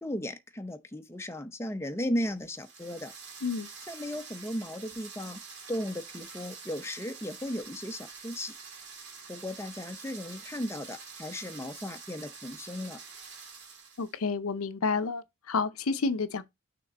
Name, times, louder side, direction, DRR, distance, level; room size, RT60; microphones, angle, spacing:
voice 1, 0.0-3.1 3.9-5.4 5.7-8.6 9.3-13.0, left 1 dB, 10° left, 0.6 m, -36 dB
sound 1, 2.4-14.2, right 5 dB, 55° right, 2.5 m, -47 dB
voice 2, 14.0-16.4, left 4 dB, 80° left, 0.6 m, -30 dB
6.4 x 3.7 x 4.1 m
head